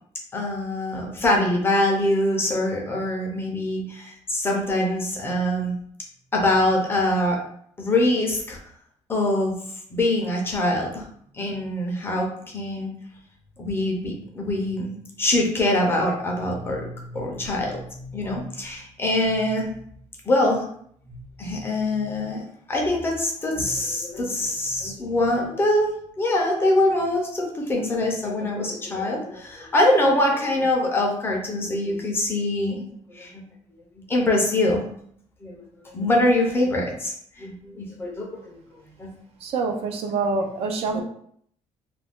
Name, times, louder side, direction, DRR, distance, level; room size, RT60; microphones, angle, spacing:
voice 1, 0.3-5.8 6.3-7.4 7.8-8.6 9.1-9.5 9.9-11.1 11.3-12.9 13.6-19.7 20.3-20.7 21.4-25.9 26.2-33.4 34.1-34.8 35.4-38.6 39.0-39.1 40.9-41.0, left 1 dB, 20° left, 0 dB, 0.5 m, -24 dB
voice 2, 39.4-41.0, right 4 dB, 55° right, 4 dB, 0.4 m, -26 dB
2.4 x 2.2 x 3.5 m, 0.64 s
cardioid pair, 170°, 12 cm